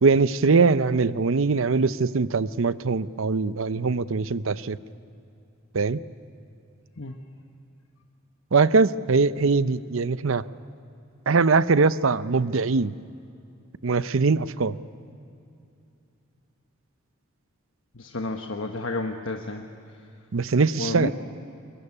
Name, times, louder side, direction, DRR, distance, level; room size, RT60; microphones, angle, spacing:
voice 1, 0.0-4.8 5.7-6.0 8.5-10.4 11.3-12.9 13.8-14.8 20.3-21.1, right 4 dB, 65° right, 15 dB, 0.6 m, -22 dB
voice 2, 17.9-19.6 20.8-21.1, left 2 dB, 65° left, 4 dB, 1.2 m, -31 dB
23.0 x 21.5 x 9.9 m, 2.6 s
head